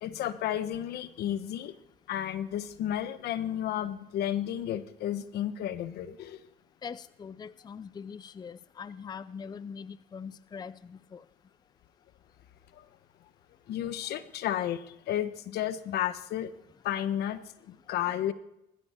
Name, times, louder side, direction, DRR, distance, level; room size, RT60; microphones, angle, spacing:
voice 1, 0.0-1.7 2.1-6.4 13.7-14.8 15.1-16.5 16.8-17.4 17.9-18.3, left 11 dB, 70° left, 12 dB, 1.3 m, -32 dB
voice 2, 6.8-11.2, left 6 dB, 25° left, 15 dB, 0.5 m, -42 dB
20.5 x 15.0 x 4.6 m, 0.85 s
cardioid pair, 110°, 17 cm